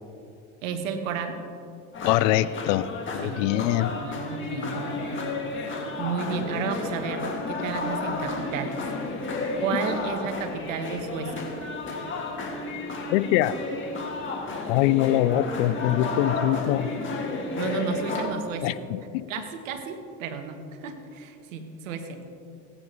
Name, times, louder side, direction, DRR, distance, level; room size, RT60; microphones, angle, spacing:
voice 1, 0.6-1.4 3.2-3.6 3.8-5.3 6.0-8.9 9.6-11.5 17.6-18.8 19.3-22.2, right 6 dB, 90° right, 7 dB, 1.2 m, -32 dB
sound 1, 1.9-18.3, left 3 dB, 30° left, 2.1 m, -32 dB
voice 2, 2.0-3.9 13.1-13.5 14.7-16.9 18.6-19.2, left 14 dB, 75° left, 17 dB, 0.5 m, -24 dB
16.0 x 9.4 x 3.1 m, 2.6 s
supercardioid pair, 85°, 38 cm